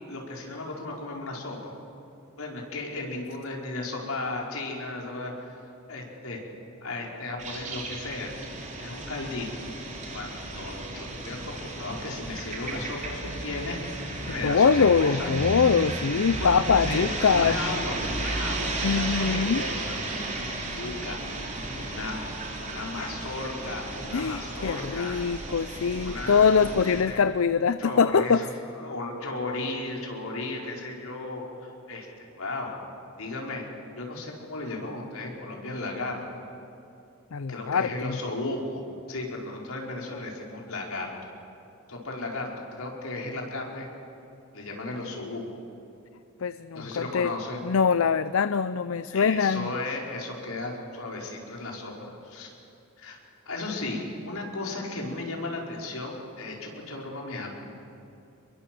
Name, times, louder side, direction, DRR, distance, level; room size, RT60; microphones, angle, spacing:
voice 1, 0.1-1.7 2.4-6.4 6.8-8.3 8.8-9.5 10.1-13.8 14.3-15.3 16.4-16.5 16.9-19.9 20.7-21.2 21.8-22.2 22.6-25.2 26.0-26.5 26.8-27.2 27.8-32.8 33.2-33.7 34.0-36.2 37.5-38.8 39.1-41.1 41.9-43.9 44.5-45.6 46.7-47.6 49.1-52.5 53.0-53.2 53.4-57.6, left 2 dB, 90° left, -1 dB, 4.9 m, -35 dB
sound 1, 7.4-27.0, right 2 dB, 35° right, 3.8 m, -34 dB
voice 2, 14.4-17.6 18.8-19.6 24.1-28.4 37.3-38.2 46.4-47.3 47.6-49.7, left 6 dB, 75° left, 14 dB, 0.5 m, -23 dB
27.5 x 22.0 x 7.7 m, 2.7 s
head